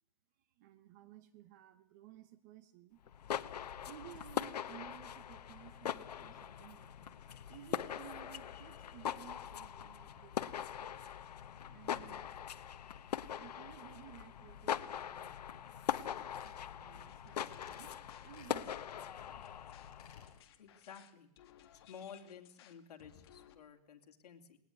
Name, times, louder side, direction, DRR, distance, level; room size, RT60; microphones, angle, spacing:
voice 1, 0.6-3.0 3.9-7.2 7.5-11.2 11.7-12.3 13.3-15.8 16.0-19.3, right 13 dB, 25° right, 14 dB, 0.9 m, -56 dB
sound 1, 3.0-20.4, left 9 dB, 90° left, 1.1 m, -42 dB
sound 2, 15.9-16.1 16.3-16.6 17.4-17.9 18.3-18.6 19.8-20.3 20.6-20.7, left 7 dB, 25° left, 4.2 m, -61 dB
sound 3, 17.0-23.5, left 10 dB, 40° left, 1.8 m, -61 dB
voice 2, 20.6-21.3 21.7-24.6, left 7 dB, 75° left, 4 dB, 2.9 m, -53 dB
21.0 x 18.0 x 9.4 m, 0.73 s
hypercardioid pair, 175°, 20 cm